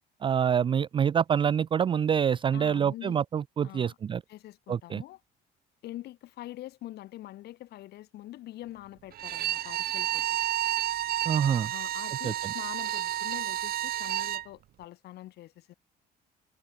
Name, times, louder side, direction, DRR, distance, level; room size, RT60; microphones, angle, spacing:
voice 1, 0.2-4.2 4.7-5.0 11.3-11.7 12.2-12.5, right 8 dB, 30° right, 0.4 m, -26 dB
voice 2, 2.5-3.2 3.6-4.0 4.3-5.2 5.8-10.3 11.7-15.7, left 15 dB, 75° left, 7.1 m, -44 dB
Bowed string instrument, 9.1-14.5, right 12 dB, 65° right, 1.8 m, -31 dB
cardioid pair, 110°, 17 cm